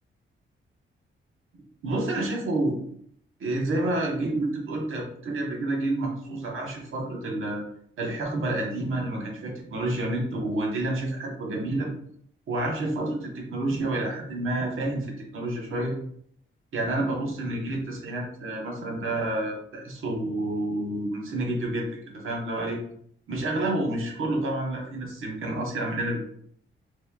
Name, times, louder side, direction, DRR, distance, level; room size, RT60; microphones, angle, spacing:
voice 1, 1.8-2.8 3.4-7.6 8.0-11.9 12.5-15.9 16.7-22.8 23.3-26.2, right 2 dB, 75° right, 0 dB, 1.1 m, -29 dB
4.2 x 3.2 x 2.3 m, 0.65 s
wide cardioid pair, 175°, 21 cm